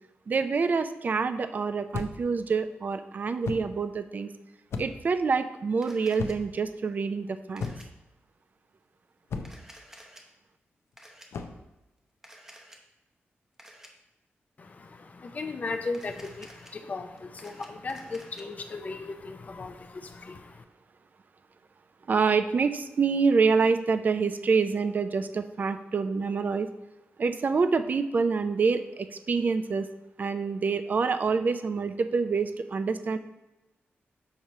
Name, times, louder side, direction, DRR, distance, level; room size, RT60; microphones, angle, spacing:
voice 1, 0.3-4.3 4.8-7.6 22.1-26.7 27.2-29.9 30.2-33.2, right 5 dB, 40° right, 10 dB, 0.4 m, -26 dB
sound 1, 1.9-2.3 3.4-3.8 4.7-5.1 6.2-6.6 7.6-8.0 9.3-9.7 11.3-11.6, left 4 dB, 85° left, 0.5 m, -35 dB
Camera, 5.8-6.3 7.6-7.9 9.4-10.2 11.0-11.3 12.2-12.8 13.6-13.9 15.9-16.7 17.2-18.4, equal, 10° right, 0.7 m, -51 dB
voice 2, 14.6-20.6, left 3 dB, 40° left, 7 dB, 0.5 m, -37 dB
6.6 x 3.0 x 5.4 m, 0.98 s
wide cardioid pair, 145°, 4 cm